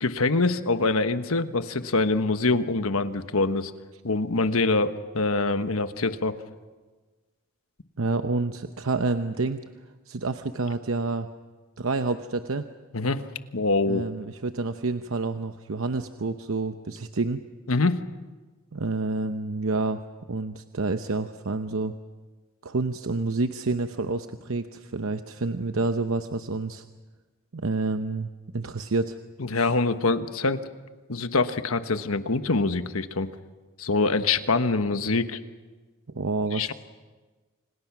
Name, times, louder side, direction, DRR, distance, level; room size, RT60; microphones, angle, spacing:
voice 1, 0.0-3.7 4.0-6.4 12.9-13.2 13.5-14.0 17.7-18.0 29.4-30.6 31.1-33.3 33.8-35.4 36.5-36.7, left 3 dB, 75° left, 10 dB, 1.2 m, -24 dB
voice 2, 8.0-9.6 10.1-11.3 11.8-12.7 13.9-17.4 18.7-20.0 20.3-21.9 22.6-26.8 27.5-29.2 29.5-29.7 36.1-36.7, right 3 dB, 70° right, 8 dB, 0.8 m, -28 dB
29.5 x 26.5 x 6.0 m, 1.3 s
head